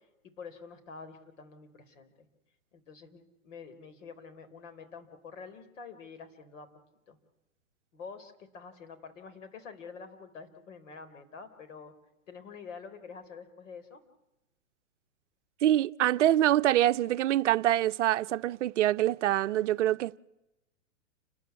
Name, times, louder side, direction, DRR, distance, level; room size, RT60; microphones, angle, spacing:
voice 1, 0.4-2.3 2.9-6.7 7.1-7.2 7.9-11.9 12.3-14.0, left 5 dB, 60° left, 4.0 m, -47 dB
voice 2, 15.6-20.2, right 13 dB, 60° right, 0.7 m, -25 dB
29.5 x 13.0 x 9.6 m
hypercardioid pair, 140°, 41 cm